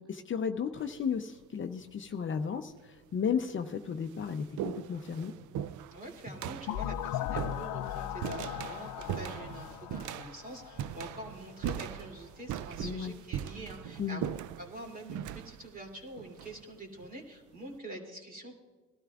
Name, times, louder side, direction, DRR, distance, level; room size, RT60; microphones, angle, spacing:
voice 1, 0.0-5.3 12.8-13.1 14.0-14.2, left 6 dB, 40° left, 8 dB, 0.6 m, -34 dB
sound 1, 0.8-1.2 2.2-2.3 3.1-3.2 3.6-17.1, right 10 dB, 75° right, 0.5 m, -40 dB
voice 2, 5.9-14.2 14.6-18.5, right 1 dB, 30° right, 1 dB, 2.9 m, -45 dB
sound 2, 6.7-11.4, left 11 dB, 80° left, 0.5 m, -38 dB
19.5 x 12.5 x 2.4 m, 1.4 s
cardioid pair, 90°, 30 cm